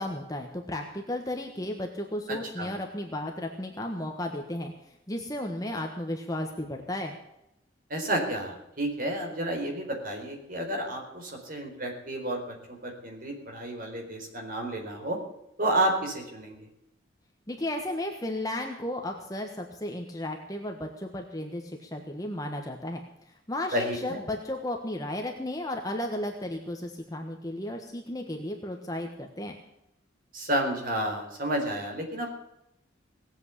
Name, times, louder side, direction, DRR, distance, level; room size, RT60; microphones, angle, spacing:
voice 1, 0.0-7.1 17.5-23.0 23.5-29.6, left 1 dB, 20° left, 2 dB, 1.3 m, -34 dB
voice 2, 2.3-2.7 7.9-15.2 15.6-16.6 23.7-24.2 30.3-32.3, right 1 dB, 50° right, 2 dB, 4.2 m, -31 dB
18.5 x 8.1 x 8.3 m, 0.87 s
head